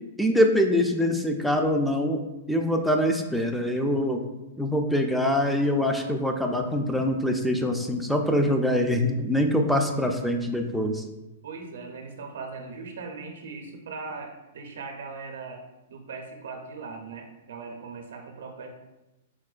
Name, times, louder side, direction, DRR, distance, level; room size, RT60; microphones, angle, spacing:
voice 1, 0.2-2.2 2.5-4.2 4.6-11.0, equal, ahead, 3 dB, 0.3 m, -24 dB
voice 2, 11.4-15.6 15.9-18.7, right 4 dB, 75° right, 3 dB, 0.5 m, -39 dB
4.5 x 2.1 x 2.3 m, 1.0 s
hypercardioid pair, 135°, 0 cm